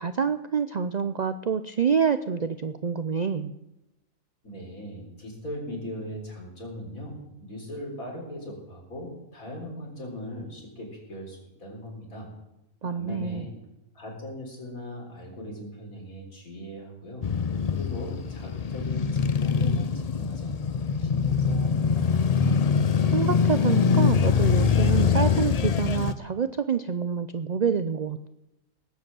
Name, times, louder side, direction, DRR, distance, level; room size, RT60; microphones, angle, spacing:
voice 1, 0.0-3.5 12.8-13.5 23.1-28.3, right 6 dB, 60° right, 11 dB, 0.4 m, -27 dB
voice 2, 4.4-12.3 12.9-13.5 13.9-17.3 17.7-22.2, equal, 80° left, 0 dB, 4.4 m, -39 dB
Male speech man speaking / Motorcycle / Idling, 17.2-26.1, left 6 dB, 55° left, 0.4 m, -23 dB
18.5 x 7.8 x 7.6 m, 0.93 s
omnidirectional pair, 1.4 m